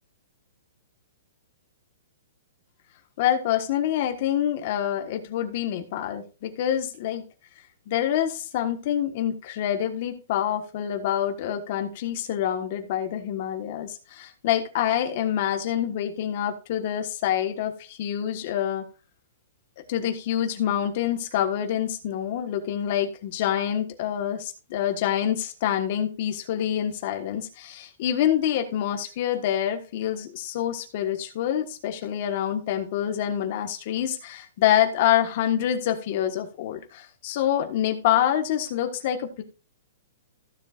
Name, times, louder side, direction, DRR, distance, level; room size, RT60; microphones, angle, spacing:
voice 1, 3.2-7.2 7.9-18.8 19.9-39.4, left 10 dB, 30° left, 5 dB, 1.4 m, -26 dB
15.0 x 7.3 x 2.5 m, 0.33 s
hypercardioid pair, 180°, 0 cm